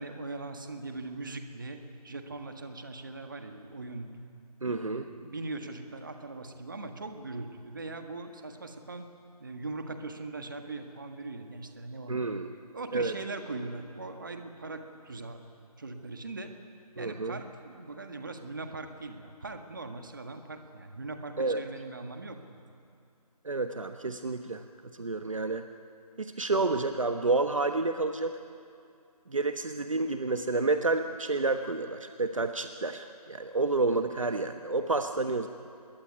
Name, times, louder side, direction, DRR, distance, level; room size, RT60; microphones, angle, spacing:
voice 1, 0.0-4.1 4.7-9.1 9.4-12.3 12.7-15.4 15.8-16.5 17.0-22.6, right 3 dB, 30° right, 6 dB, 1.7 m, -40 dB
voice 2, 4.6-5.1 12.1-12.5 12.9-13.1 17.0-17.4 21.4-21.6 23.4-25.6 26.2-28.4 29.3-35.5, right 3 dB, 55° right, 7 dB, 1.2 m, -29 dB
26.0 x 21.5 x 9.6 m, 2.4 s
figure-of-eight pair, 180°, 20 cm